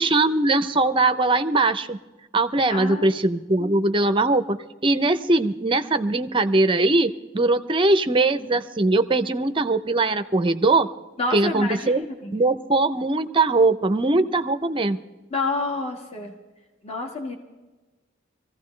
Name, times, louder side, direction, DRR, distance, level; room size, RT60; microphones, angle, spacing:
voice 1, 0.0-2.0 2.3-4.6 4.8-10.9 11.3-12.1 12.3-15.0, right 2 dB, 25° right, 10 dB, 0.6 m, -21 dB
voice 2, 2.7-3.1 11.2-12.4 15.3-16.3 16.8-17.3, left 3 dB, 30° left, 0 dB, 1.6 m, -28 dB
23.0 x 15.5 x 3.2 m, 1.2 s
head